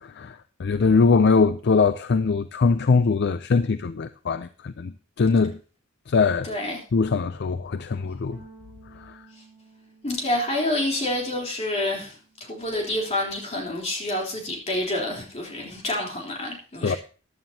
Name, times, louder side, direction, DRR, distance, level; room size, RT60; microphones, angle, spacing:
voice 1, 0.0-5.6 6.1-6.5 6.9-8.4 8.9-9.2 16.8-17.0, left 4 dB, 50° left, 0.4 m, -22 dB
voice 2, 6.4-6.8 10.0-17.0, left 1 dB, 30° left, 3.5 m, -28 dB
sound 1, 8.3-12.9 13.2-14.6, right 3 dB, 15° right, 3.7 m, -55 dB
15.0 x 11.0 x 2.8 m
head